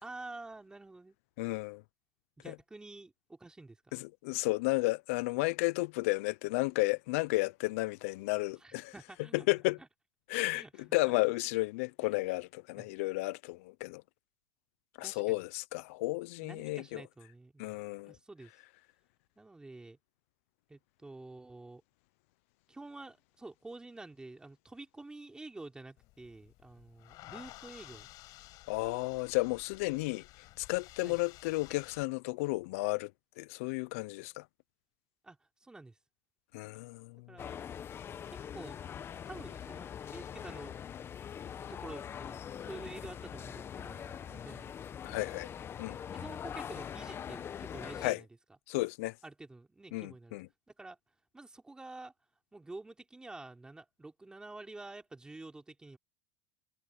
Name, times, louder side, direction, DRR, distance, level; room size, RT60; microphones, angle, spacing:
voice 1, 0.0-1.2 2.4-3.9 8.6-9.5 9.8-9.9 10.5-10.7 12.0-12.2 12.8-12.9 15.0-15.4 16.4-18.5 19.4-20.0 20.7-21.8 22.7-28.1 31.0-31.2 35.2-36.0 37.3-37.6 38.3-38.8 39.3-40.8 41.7-44.7 45.1-45.3 46.1-48.3 49.2-50.4 50.8-51.0 51.3-52.1 52.5-56.0, right 2 dB, 10° right, 3.5 m, -49 dB
voice 2, 1.4-1.8 2.5-2.6 3.9-8.9 9.3-9.8 10.3-10.6 10.9-14.0 15.0-17.0 17.6-18.1 28.7-30.2 30.6-33.1 33.4-34.4 36.5-37.2 45.0-45.5 45.8-46.0 48.0-48.2 48.7-49.1 49.9-50.5, left 23 dB, 70° left, 0.7 m, -33 dB
sound 1, 26.0-32.0, left 18 dB, 55° left, 5.5 m, -53 dB
sound 2, 37.4-48.1, left 8 dB, 30° left, 1.3 m, -43 dB
hypercardioid pair, 105°, 8 cm